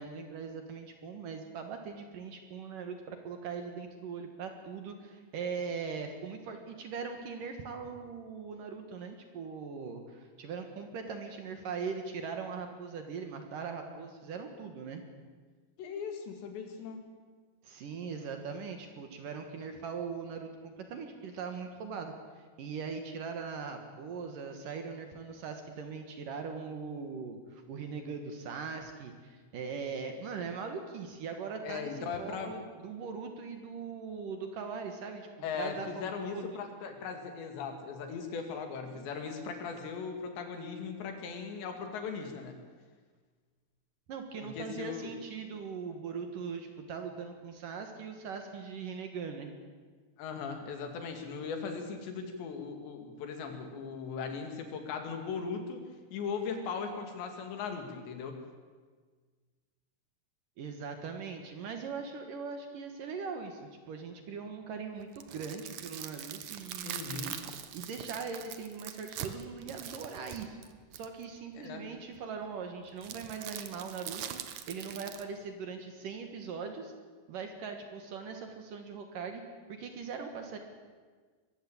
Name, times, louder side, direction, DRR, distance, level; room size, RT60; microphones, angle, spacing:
voice 1, 0.0-15.0 17.6-22.1 22.6-35.3 35.5-36.6 44.1-49.5 60.6-67.4 67.7-70.6 70.9-74.4 74.7-76.9 77.3-79.4 79.7-80.6, right 5 dB, 60° right, 5 dB, 2.7 m, -40 dB
voice 2, 15.8-17.1 31.6-32.6 35.4-42.6 44.4-45.1 50.2-55.8 56.1-58.4 66.8-67.4 71.6-71.8, left 5 dB, 80° left, 5 dB, 4.5 m, -38 dB
sound 1, 65.0-71.2 73.0-75.2, right 10 dB, 75° right, 1.7 m, -42 dB
23.0 x 15.0 x 8.8 m, 1.5 s
omnidirectional pair, 5.0 m